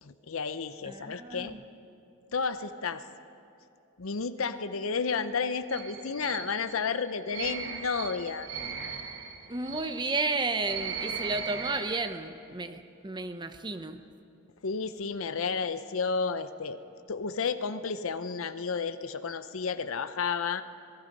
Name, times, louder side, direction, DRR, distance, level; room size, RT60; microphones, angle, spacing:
voice 1, 0.0-1.5 2.3-3.0 4.0-8.5 14.6-16.8 17.1-20.6, left 5 dB, 80° left, 11 dB, 0.7 m, -32 dB
voice 2, 0.8-1.6 9.5-14.0, right 3 dB, 20° right, 9 dB, 0.7 m, -33 dB
sound 1, 5.7-12.1, right 6 dB, 60° right, 1.5 m, -38 dB
26.5 x 19.5 x 5.3 m, 2.7 s
head